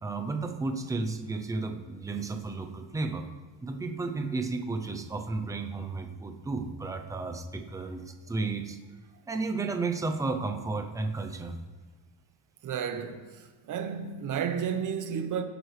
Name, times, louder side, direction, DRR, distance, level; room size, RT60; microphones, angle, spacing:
voice 1, 0.0-3.2 3.6-8.8 9.3-11.5, right 3 dB, 10° right, 0.4 m, -33 dB
voice 2, 12.6-15.4, right 7 dB, 40° right, 1.0 m, -32 dB
17.5 x 7.9 x 3.2 m
cardioid pair, 165°, 49 cm